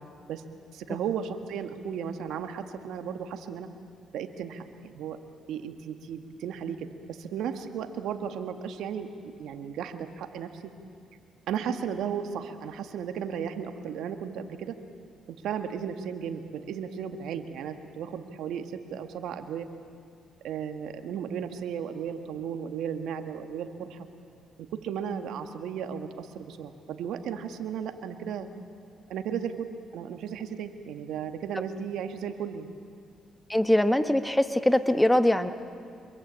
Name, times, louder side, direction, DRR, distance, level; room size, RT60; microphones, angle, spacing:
voice 1, 0.7-3.7 4.1-5.2 5.5-10.7 11.5-14.7 15.4-19.7 20.4-24.1 24.6-28.5 29.1-29.7 29.9-32.7, right 8 dB, 80° right, 7 dB, 1.7 m, -35 dB
voice 2, 33.5-35.5, left 1 dB, 5° left, 10 dB, 1.3 m, -22 dB
25.5 x 22.5 x 8.7 m, 2.5 s
cardioid pair, 90°, 0 cm